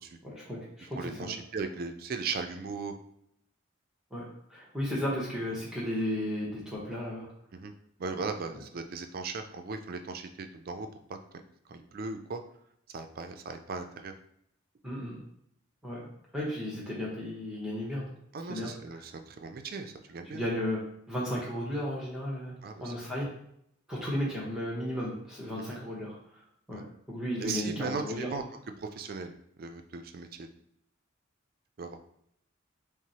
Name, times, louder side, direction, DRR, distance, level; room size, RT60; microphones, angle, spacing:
voice 1, 0.2-1.4 4.1-7.3 14.8-15.2 15.8-18.1 18.5-18.7 20.3-20.8 21.1-23.3 23.9-26.2 26.7-26.8 27.1-28.3, left 1 dB, 5° right, -5 dB, 0.8 m, -34 dB
voice 2, 1.0-2.9 7.5-7.7 8.0-11.2 11.7-12.4 12.9-14.1 18.3-20.5 22.6-23.1 25.6-25.8 26.7-26.8 27.4-28.4 28.8-29.3 29.6-30.5 31.8-32.0, right 4 dB, 45° right, 7 dB, 0.4 m, -38 dB
5.7 x 2.0 x 2.8 m, 0.72 s
head